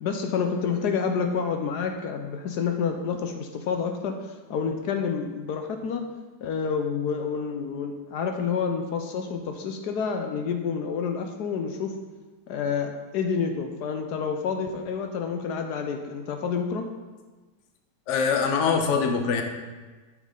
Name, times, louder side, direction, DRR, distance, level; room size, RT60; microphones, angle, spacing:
voice 1, 0.0-6.0 6.4-11.9 12.5-16.8, left 6 dB, 75° left, 4 dB, 1.2 m, -28 dB
voice 2, 18.1-19.4, left 5 dB, 50° left, 4 dB, 1.0 m, -23 dB
9.1 x 6.3 x 3.8 m, 1.3 s
omnidirectional pair, 1.8 m